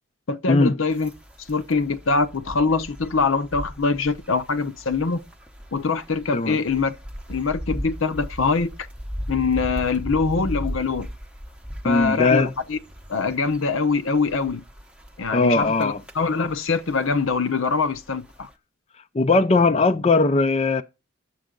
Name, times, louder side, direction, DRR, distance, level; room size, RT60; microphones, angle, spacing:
voice 1, 0.3-1.1 1.5-5.2 5.7-6.9 7.3-8.7 9.3-11.1 11.8-12.8 13.1-14.6 15.2-18.5, left 4 dB, 75° left, 0.8 m, -23 dB
sound 1, 0.9-18.5, equal, 5° right, 0.8 m, -38 dB
voice 2, 11.8-12.5 15.3-16.0 19.1-20.8, left 3 dB, 30° left, 0.5 m, -19 dB
10.5 x 7.4 x 3.8 m
head